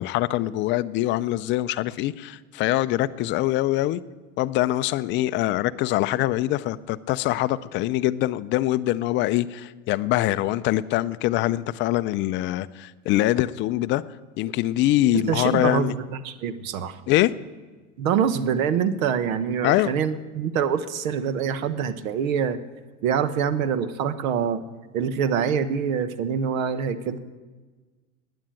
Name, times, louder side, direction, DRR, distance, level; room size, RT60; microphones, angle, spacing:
voice 1, 0.0-4.0 4.4-14.0 14.4-15.9 17.1-17.3 19.6-19.9, left 15 dB, 30° left, 0.4 m, -23 dB
voice 2, 15.1-17.0 18.0-22.6 23.0-24.6 24.9-27.2, right 7 dB, 75° right, 1.2 m, -25 dB
12.5 x 9.8 x 8.9 m
supercardioid pair, 120°, 41 cm